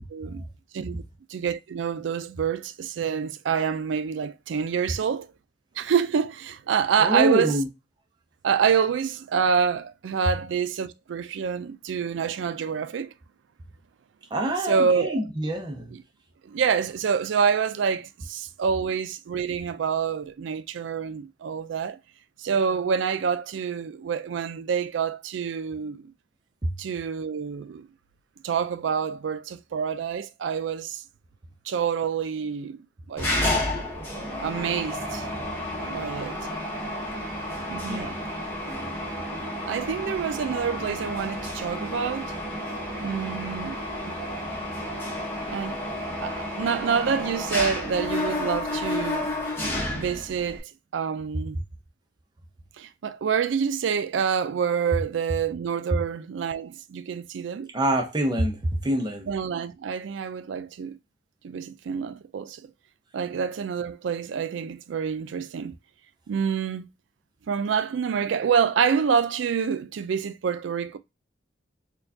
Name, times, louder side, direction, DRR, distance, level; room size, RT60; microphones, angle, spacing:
voice 1, 0.1-0.4 0.7-1.0 1.3-5.3 5.8-7.5 8.4-13.1 14.7-15.2 16.4-22.0 22.4-26.1 26.8-27.9 28.4-31.0 31.7-32.8 33.1-33.3 34.4-35.3 35.8-36.4 37.7-38.1 39.7-42.3 43.0-43.8 44.1-44.2 45.5-45.8 46.2-49.3 49.9-51.6 52.8-57.7 59.3-61.0 61.4-62.7 63.1-65.8 66.3-66.9 67.5-71.0, right 6 dB, 90° right, 0.4 m, -27 dB
voice 2, 7.0-7.7 14.3-15.9 26.6-26.8 37.9-38.2 51.3-51.4 55.9-56.0 57.7-59.3, right 1 dB, 25° right, 0.5 m, -26 dB
Mechanisms, 33.2-50.6, left 1 dB, 15° left, 0.8 m, -31 dB
4.4 x 2.3 x 2.6 m
head